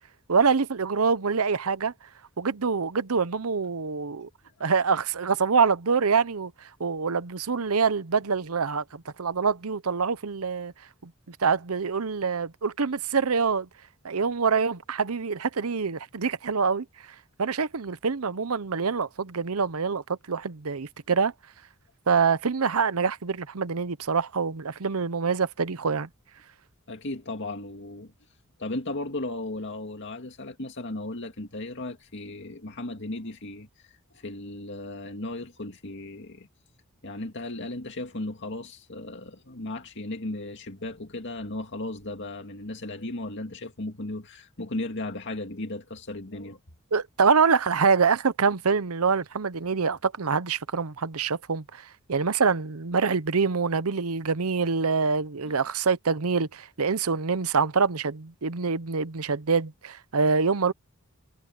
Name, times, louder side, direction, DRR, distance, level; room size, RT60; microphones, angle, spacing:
voice 1, 0.3-1.9 2.4-4.3 4.6-6.5 6.8-10.7 11.0-13.7 14.0-16.8 17.4-21.3 22.1-26.1 46.9-51.8 52.1-60.7, right 5 dB, 85° right, 0.8 m, -25 dB
voice 2, 26.9-28.1 28.6-33.7 34.1-36.5 37.0-46.6 55.4-55.5, left 2 dB, 60° left, 2.2 m, -36 dB
head